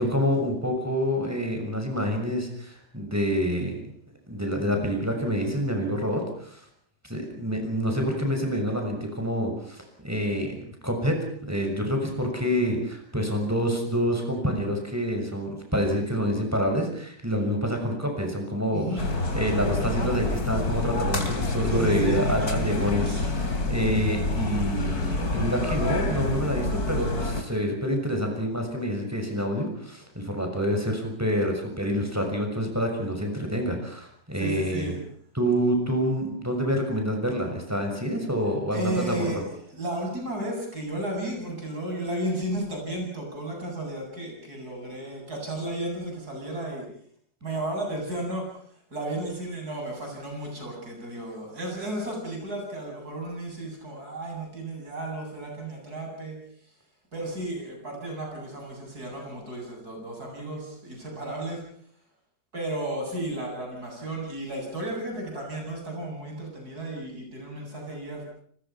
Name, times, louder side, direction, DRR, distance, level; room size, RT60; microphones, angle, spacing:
voice 1, 0.0-3.8 4.3-6.6 7.0-11.2 11.5-18.8 19.3-34.9 35.3-39.4, equal, 10° right, 3 dB, 6.4 m, -27 dB
voice 2, 18.7-19.0 21.7-22.7 23.0-23.2 34.4-35.0 38.7-46.9 47.4-48.4 48.9-56.4 57.1-61.6 62.5-68.2, right 1 dB, 65° right, 1 dB, 8.7 m, -33 dB
sound 1, 19.0-27.4, left 2 dB, 65° left, 3.5 m, -27 dB
29.5 x 21.0 x 5.9 m, 0.62 s
omnidirectional pair, 1.8 m